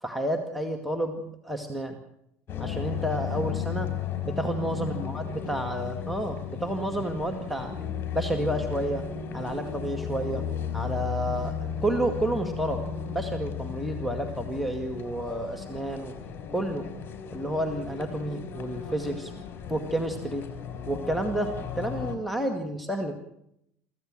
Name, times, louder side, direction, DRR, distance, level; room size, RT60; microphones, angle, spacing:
voice 1, 0.0-2.0 2.6-3.9 4.2-7.7 8.1-9.1 9.3-10.4 10.7-12.8 13.1-16.1 16.5-16.9 17.3-19.3 19.7-20.5 20.9-23.2, right 1 dB, ahead, 3 dB, 2.1 m, -30 dB
sound 1, 2.5-22.2, left 8 dB, 35° left, 3.7 m, -35 dB
24.5 x 15.0 x 7.7 m, 0.78 s
figure-of-eight pair, 65°, 7 cm